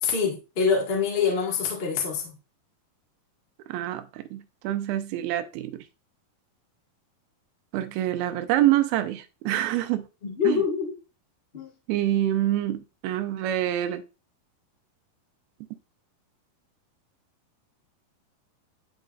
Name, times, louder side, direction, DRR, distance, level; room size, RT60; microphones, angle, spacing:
voice 1, 0.0-2.3 10.2-10.9 11.5-11.7, left 6 dB, 65° left, 0.5 m, -25 dB
voice 2, 3.7-5.8 7.7-10.1 10.4-10.6 11.9-14.0, right 13 dB, 90° right, 2.6 m, -26 dB
11.0 x 3.9 x 2.4 m
omnidirectional pair, 4.2 m